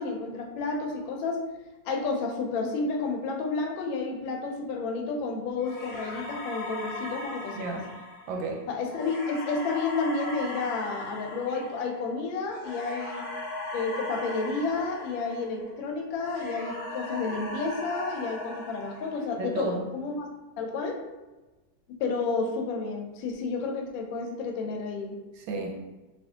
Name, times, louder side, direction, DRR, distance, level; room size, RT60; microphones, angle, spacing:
voice 1, 0.0-1.4 1.9-7.8 8.7-13.3 13.7-20.3 20.6-21.0 22.0-25.2, left 4 dB, 85° left, 2 dB, 1.3 m, -31 dB
sound 1, 5.6-15.8 16.1-19.5, left 2 dB, 50° left, 1.2 m, -38 dB
voice 2, 7.5-7.9 8.3-8.7 19.4-19.9 25.4-25.8, right 3 dB, 85° right, 1 dB, 1.4 m, -32 dB
3.2 x 2.9 x 2.7 m, 1.1 s
omnidirectional pair, 2.1 m